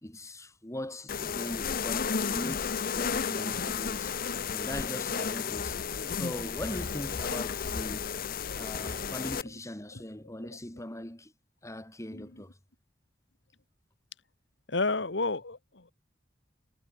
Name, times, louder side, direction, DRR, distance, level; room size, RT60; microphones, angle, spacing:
voice 1, 0.0-4.2 4.5-5.8 6.1-8.2 8.5-11.3 11.6-12.6, left 1 dB, 15° left, 2.5 m, -40 dB
sound 1, 1.1-9.4, left 6 dB, 50° left, 0.8 m, -33 dB
voice 2, 14.7-15.9, left 3 dB, 70° left, 1.7 m, -31 dB
head